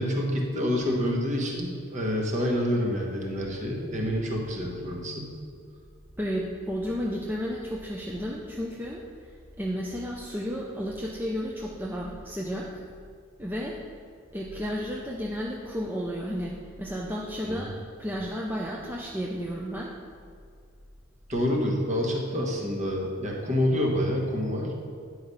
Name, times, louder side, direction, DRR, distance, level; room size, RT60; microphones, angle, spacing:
voice 1, 0.0-5.3 17.4-17.7 21.3-24.7, equal, 35° right, -1 dB, 1.4 m, -27 dB
voice 2, 6.2-9.3 9.6-12.7 13.4-13.8 14.3-17.7 18.0-19.9, equal, 10° right, -3 dB, 0.5 m, -32 dB
9.8 x 4.9 x 5.5 m, 2.2 s
head